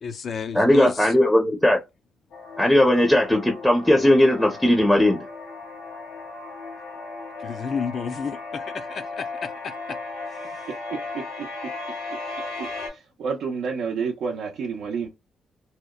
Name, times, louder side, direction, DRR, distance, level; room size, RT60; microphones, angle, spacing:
voice 1, 0.0-1.1 7.4-9.3, left 6 dB, 50° left, 0.4 m, -30 dB
voice 2, 0.5-1.8 2.6-5.2, left 1 dB, 5° left, 0.6 m, -18 dB
sound 1, 2.3-12.9, left 3 dB, 90° left, 1.3 m, -36 dB
voice 3, 11.1-11.5 12.9-15.1, right 5 dB, 75° right, 0.5 m, -29 dB
2.8 x 2.0 x 2.2 m
cardioid pair, 90°, 0 cm